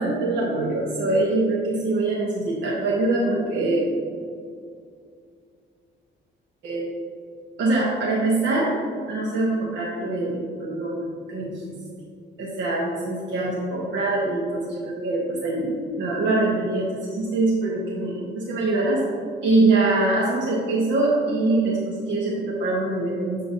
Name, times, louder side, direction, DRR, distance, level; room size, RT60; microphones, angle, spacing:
voice 1, 0.0-3.8 6.6-6.9 7.6-8.7 9.1-11.6 12.4-19.0 19.4-23.4, right 2 dB, 70° right, -4 dB, 1.0 m, -23 dB
6.7 x 6.6 x 2.6 m, 2.3 s
cardioid pair, 90°, 20 cm